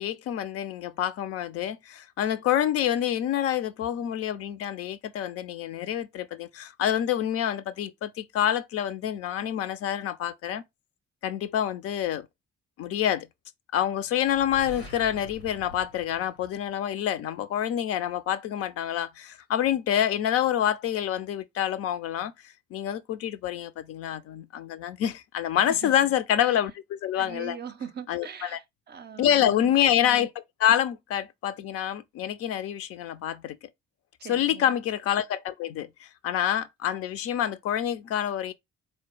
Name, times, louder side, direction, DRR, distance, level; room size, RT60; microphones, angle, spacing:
voice 1, 0.0-10.6 11.2-12.3 12.8-13.3 13.7-22.3 22.7-27.6 28.1-28.6 29.2-33.6 34.3-38.5, left 10 dB, 50° left, 0.5 m, -27 dB
sound 1, 14.2-17.1, left 1 dB, 90° left, 0.9 m, -46 dB
voice 2, 25.7-26.1 26.5-26.6 27.1-29.8 34.2-34.7, right 7 dB, 35° right, 0.6 m, -41 dB
4.2 x 2.1 x 4.5 m
figure-of-eight pair, 40°, 31 cm